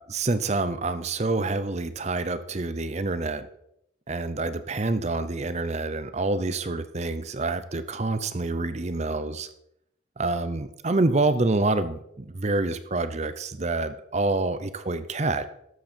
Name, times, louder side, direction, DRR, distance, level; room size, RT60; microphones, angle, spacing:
voice 1, 0.0-3.5 4.1-9.5 10.2-15.4, right 2 dB, 35° right, 12 dB, 0.6 m, -27 dB
12.5 x 7.9 x 4.5 m, 0.76 s
head